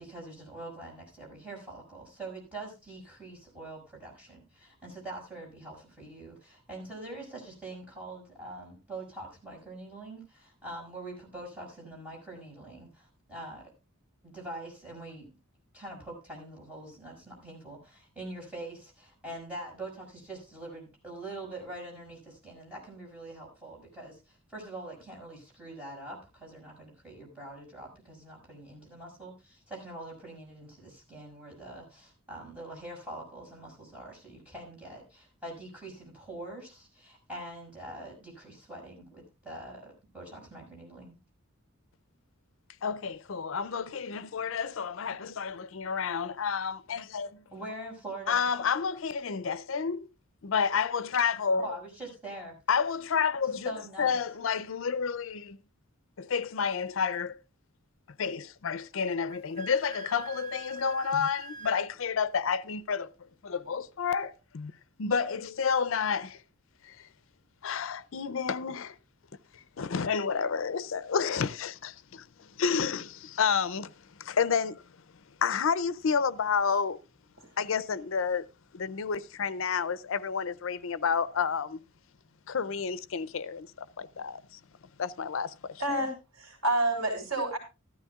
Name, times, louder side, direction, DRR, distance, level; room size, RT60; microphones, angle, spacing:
voice 1, 0.0-13.7 14.2-15.3 15.7-41.2 47.5-48.5 51.6-52.6 53.6-54.2, right 1 dB, 5° right, 5.8 m, -44 dB
voice 2, 42.8-47.4 48.3-50.1 50.4-51.7 52.7-53.7 54.0-55.6 56.2-57.4 58.2-63.1 63.4-64.7 65.0-66.4 66.8-67.0 67.6-69.0 69.5-73.9 74.2-74.8 75.4-77.0 77.6-78.5 78.7-81.8 82.5-84.6 85.0-85.8, left 6 dB, 65° left, 0.5 m, -30 dB
Wind instrument woodwind instrument, 59.3-61.9, right 4 dB, 50° right, 2.5 m, -45 dB
voice 3, 85.8-87.6, right 1 dB, 90° right, 3.6 m, -29 dB
14.0 x 13.0 x 2.4 m
head